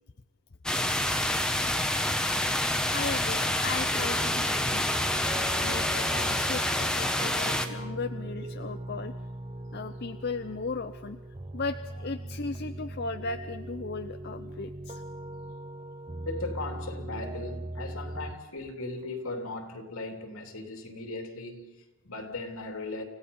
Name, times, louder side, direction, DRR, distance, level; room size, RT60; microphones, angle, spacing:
sound 1, 0.7-7.7, left 1 dB, 5° left, 1.0 m, -27 dB
voice 1, 2.9-4.9 5.6-9.1 9.7-11.2 11.5-15.0, left 4 dB, 45° left, 0.6 m, -36 dB
sound 2, 3.9-18.3, right 1 dB, 25° right, 0.6 m, -39 dB
voice 2, 16.3-23.0, left 2 dB, 75° left, 3.1 m, -38 dB
29.5 x 16.5 x 5.5 m
head